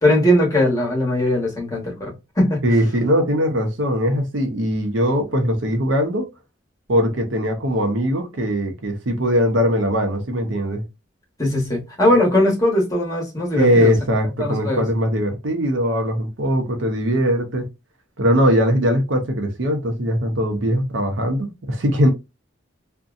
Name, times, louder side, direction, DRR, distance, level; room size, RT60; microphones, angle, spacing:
voice 1, 0.0-2.6 11.4-13.9 14.4-14.8, left 1 dB, 20° left, 1.1 m, -19 dB
voice 2, 2.6-6.3 6.9-10.8 13.5-17.7 18.2-22.1, equal, 75° right, 0.7 m, -20 dB
2.6 x 2.1 x 2.4 m
head